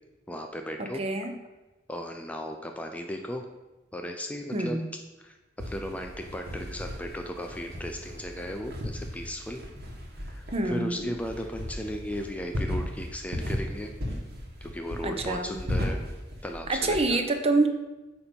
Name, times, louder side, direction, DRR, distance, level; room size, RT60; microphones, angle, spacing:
voice 1, 0.3-1.0 1.9-3.5 3.9-4.8 5.2-5.4 5.6-9.6 10.2-13.9 14.6-16.0 16.4-17.2, equal, 10° left, 4 dB, 0.4 m, -36 dB
voice 2, 0.8-1.3 4.5-4.9 10.5-11.1 15.0-15.6 16.7-17.7, right 2 dB, 35° right, 6 dB, 0.6 m, -27 dB
sound 1, 5.6-17.0, left 1 dB, 60° right, 1.3 m, -36 dB
8.3 x 2.9 x 5.2 m, 1.1 s
head